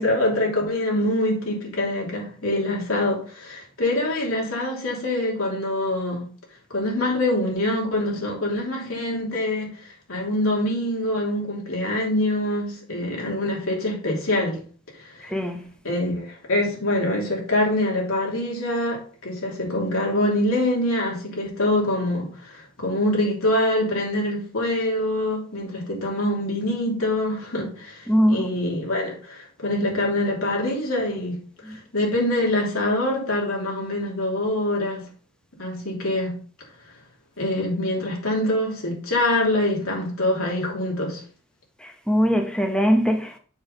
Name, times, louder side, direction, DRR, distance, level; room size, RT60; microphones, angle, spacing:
voice 1, 0.0-6.3 6.7-14.6 14.9-15.3 15.8-35.0 35.6-36.4 37.4-41.2, left 1 dB, 80° left, 2.9 m, -25 dB
voice 2, 15.2-15.6 28.1-28.5 31.7-31.8 41.8-43.4, equal, 5° left, 1.0 m, -21 dB
7.1 x 6.2 x 4.0 m
head